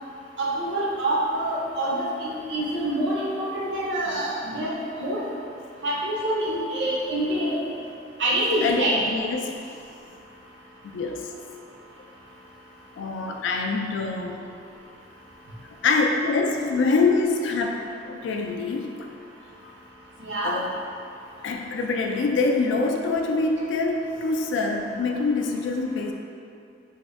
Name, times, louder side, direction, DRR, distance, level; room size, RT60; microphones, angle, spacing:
voice 1, 0.4-4.7 5.0-5.3 5.8-7.6 8.2-8.9 20.2-20.5, right 1 dB, 65° right, -4 dB, 0.6 m, -26 dB
voice 2, 8.6-9.5 10.8-11.2 13.0-14.5 15.8-17.8 18.1-18.9 20.4-20.7 21.4-26.1, left 3 dB, 75° left, 2 dB, 0.3 m, -25 dB
3.4 x 2.1 x 3.4 m, 2.5 s
head